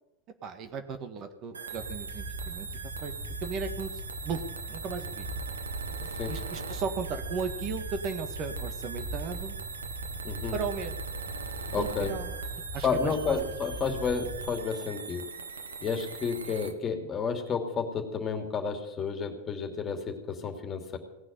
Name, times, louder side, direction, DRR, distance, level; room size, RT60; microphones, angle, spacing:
voice 1, 0.4-2.7 3.0-3.1 3.4-4.4 4.7-5.3 6.3-9.5 10.5-10.9 11.8-12.3 12.7-13.4, right 5 dB, 40° right, 8 dB, 1.7 m, -36 dB
sound 1, 1.5-16.7, right 5 dB, 85° right, 1.2 m, -41 dB
sound 2, 1.7-14.6, right 1 dB, 65° right, 4.5 m, -40 dB
voice 2, 11.7-12.1 12.8-15.3 15.8-21.0, left 5 dB, 30° left, 5 dB, 2.9 m, -31 dB
18.0 x 6.3 x 9.6 m, 0.99 s
hypercardioid pair, 90°, 0 cm